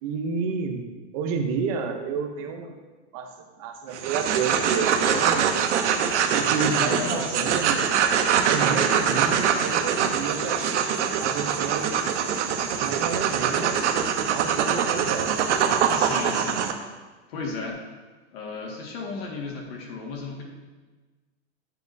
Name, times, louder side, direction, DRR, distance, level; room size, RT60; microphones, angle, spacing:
voice 1, 0.0-0.9 1.1-2.8 3.1-5.5 6.3-7.9 8.5-12.0 12.7-15.5, right 5 dB, 30° right, 5 dB, 0.7 m, -30 dB
sound 1, 3.9-16.7, right 7 dB, 80° right, 0.9 m, -23 dB
voice 2, 6.7-7.5 16.0-16.7 17.3-17.8 18.3-20.5, left 4 dB, 55° left, 0 dB, 1.9 m, -34 dB
9.4 x 7.6 x 2.7 m, 1.3 s
supercardioid pair, 170°, 35 cm